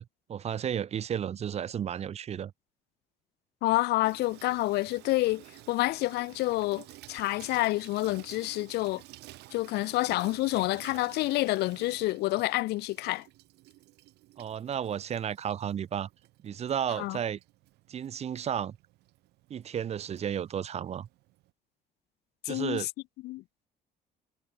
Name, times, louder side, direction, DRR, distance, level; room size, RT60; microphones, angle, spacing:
voice 1, 0.0-2.5 14.4-16.1 16.4-17.4 17.9-18.8 19.5-21.1 22.5-22.9, right 9 dB, 40° right, 0.6 m, -33 dB
voice 2, 3.6-9.0 9.5-13.3 17.0-17.2 22.4-22.9 23.2-23.4, left 19 dB, 75° left, 0.4 m, -28 dB
Water tap faucet / Sink (filling or washing), 4.0-21.5, right 18 dB, 85° right, 1.6 m, -53 dB
cardioid pair, 110°, 17 cm